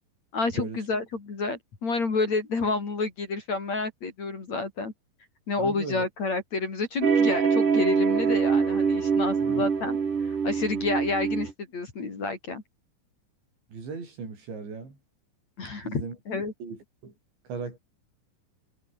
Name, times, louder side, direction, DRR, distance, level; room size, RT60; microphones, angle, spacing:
voice 1, 0.3-4.9 5.5-10.0 10.3-12.6 15.6-16.5, left 3 dB, 35° left, 4.9 m, -29 dB
voice 2, 5.6-6.1 9.4-9.7 13.7-15.0 15.8-16.2 16.6-17.1 17.5-17.8, right 4 dB, 65° right, 9.7 m, -37 dB
Paisley Clouds, 7.0-11.5, right 6 dB, 45° right, 5.2 m, -24 dB
omnidirectional pair, 5.5 m